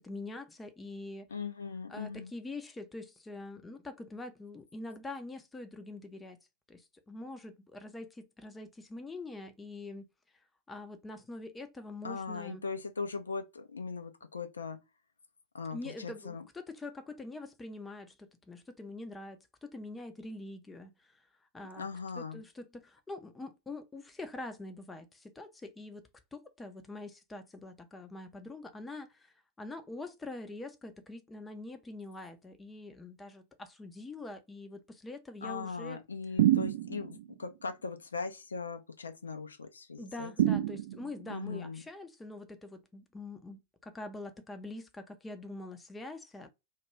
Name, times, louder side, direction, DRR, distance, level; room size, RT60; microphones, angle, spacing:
voice 1, 0.0-1.3 1.9-6.4 6.7-10.1 10.7-12.6 15.7-21.2 21.5-21.9 22.2-36.0 40.0-46.5, left 2 dB, 10° left, 0.4 m, -44 dB
voice 2, 1.3-2.3 12.0-14.8 15.5-16.5 21.8-22.4 35.4-40.6 41.3-41.8, left 4 dB, 75° left, 0.4 m, -39 dB
sound 1, 36.4-37.2 40.4-41.3, right 13 dB, 55° right, 0.3 m, -27 dB
2.2 x 2.2 x 3.0 m
figure-of-eight pair, 90°, 0 cm